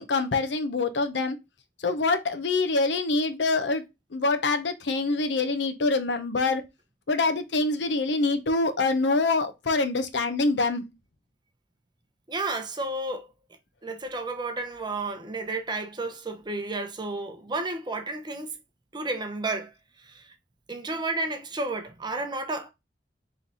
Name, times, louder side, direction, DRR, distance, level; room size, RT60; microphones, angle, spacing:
voice 1, 0.0-1.4 1.8-3.8 4.1-6.6 7.1-10.8, left 3 dB, 75° left, 0.7 m, -25 dB
voice 2, 12.3-13.3 13.8-18.6 18.9-19.7 20.0-20.3 20.7-22.7, right 2 dB, 25° right, 0.7 m, -32 dB
4.0 x 3.2 x 3.9 m
head